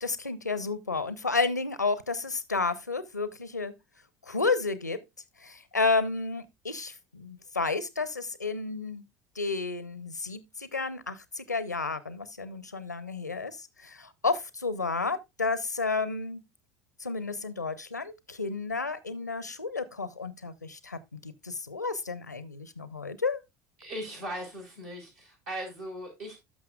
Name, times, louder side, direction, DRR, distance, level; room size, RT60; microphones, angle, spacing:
voice 1, 0.0-3.7 4.3-5.0 5.4-9.0 9.4-16.4 17.0-23.4, left 4 dB, 85° left, 0.6 m, -31 dB
voice 2, 23.8-26.4, right 1 dB, 65° right, 5.2 m, -38 dB
12.5 x 5.8 x 2.3 m
figure-of-eight pair, 65°, 9 cm